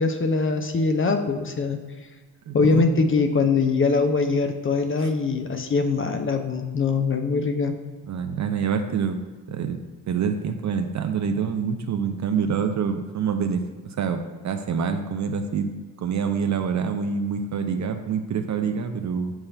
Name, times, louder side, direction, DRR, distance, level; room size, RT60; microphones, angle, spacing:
voice 1, 0.0-1.8 2.5-7.7, left 4 dB, 25° left, 5 dB, 0.6 m, -22 dB
voice 2, 2.5-2.9 5.0-5.1 8.1-9.2 9.5-9.8 10.1-15.7 16.0-19.3, right 6 dB, 35° right, 6 dB, 0.6 m, -26 dB
6.2 x 3.2 x 5.7 m, 1.4 s
figure-of-eight pair, 40°, 50 cm